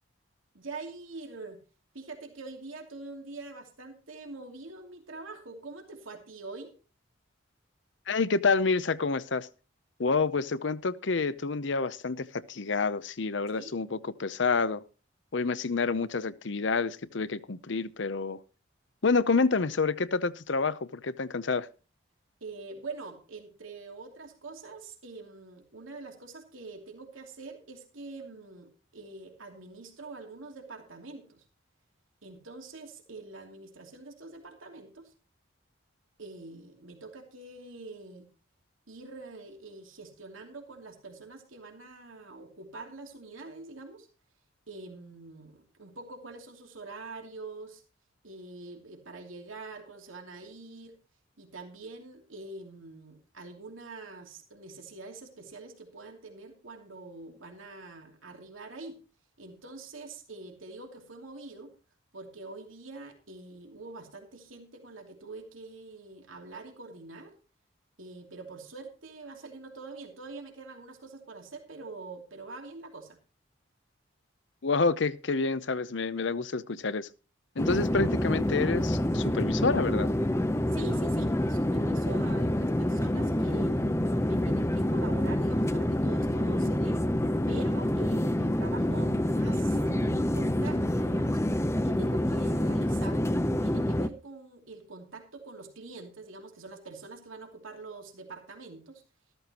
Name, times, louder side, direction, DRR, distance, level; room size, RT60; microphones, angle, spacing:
voice 1, 0.5-1.6 1.9-6.7 13.5-13.7 22.4-31.4 32.2-35.1 36.2-38.3 38.9-44.1 44.7-47.8 48.2-50.9 51.4-59.0 59.4-61.7 62.1-67.3 68.0-73.2 80.7-87.0 87.5-91.4 91.8-93.2 93.6-99.0, right 3 dB, 85° right, 2.8 m, -45 dB
voice 2, 8.1-9.5 10.0-14.8 15.3-18.4 19.0-21.7 74.6-77.1 77.6-80.1, left 4 dB, 65° left, 0.7 m, -28 dB
sound 1, 77.6-94.1, left 1 dB, 15° left, 0.6 m, -27 dB
14.0 x 13.5 x 2.9 m
head